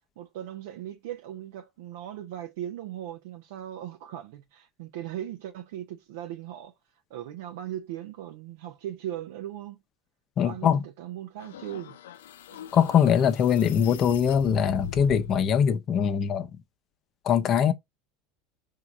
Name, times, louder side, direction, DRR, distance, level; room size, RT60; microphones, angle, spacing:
voice 1, 0.2-6.7 7.1-9.8 10.4-12.0 12.5-12.7, right 11 dB, 65° right, 0.8 m, -38 dB
voice 2, 10.4-10.8 12.7-16.5 17.2-17.7, left 8 dB, 45° left, 0.8 m, -22 dB
sound 1, 11.4-15.4, left 8 dB, 75° left, 0.6 m, -40 dB
4.7 x 3.8 x 5.4 m
hypercardioid pair, 80°, 0 cm